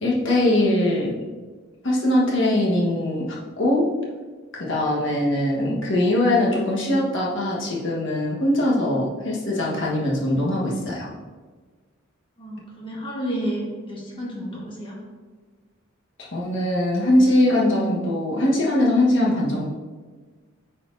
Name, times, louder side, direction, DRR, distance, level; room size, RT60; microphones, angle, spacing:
voice 1, 0.0-1.1 1.8-3.8 4.5-11.1 16.2-19.7, left 1 dB, 60° left, -4 dB, 1.3 m, -21 dB
voice 2, 12.4-15.0, right 1 dB, 25° left, -4 dB, 1.4 m, -31 dB
8.9 x 4.3 x 2.6 m, 1.4 s
head